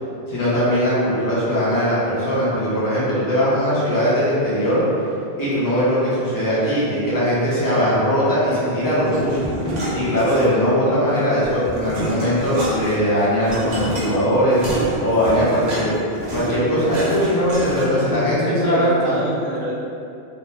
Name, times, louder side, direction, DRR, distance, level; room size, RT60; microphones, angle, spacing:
voice 1, 0.3-4.8 5.4-9.5 9.9-15.9 16.3-19.2, equal, 20° left, -10 dB, 0.7 m, -20 dB
sound 1, 9.1-10.8 11.1-18.1, equal, 50° right, 0.6 m, -29 dB
voice 2, 18.1-19.8, right 1 dB, 75° right, -5 dB, 0.9 m, -26 dB
2.7 x 2.1 x 3.2 m, 2.6 s
omnidirectional pair, 1.1 m